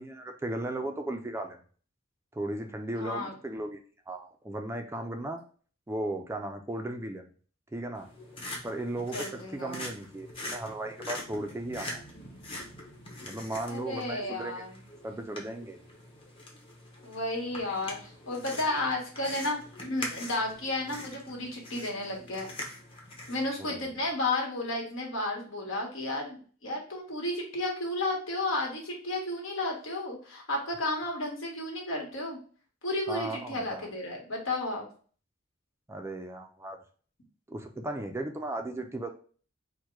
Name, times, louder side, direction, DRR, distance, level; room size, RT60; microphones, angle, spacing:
voice 1, 0.0-1.6 2.3-3.8 4.1-5.4 5.9-7.3 7.7-8.1 8.6-9.2 9.5-12.0 13.2-14.6 15.0-15.8 23.6-23.9 33.1-33.9 35.9-36.8 37.5-39.1, right 1 dB, 15° right, 4 dB, 0.4 m, -36 dB
voice 2, 3.0-3.3 9.1-9.8 13.7-14.7 17.0-22.5 23.3-32.4 32.8-34.9, left 2 dB, 75° left, 0 dB, 1.5 m, -33 dB
sound 1, 7.9-23.5, left 1 dB, 25° left, 1.0 m, -43 dB
4.5 x 2.2 x 4.5 m, 0.42 s
head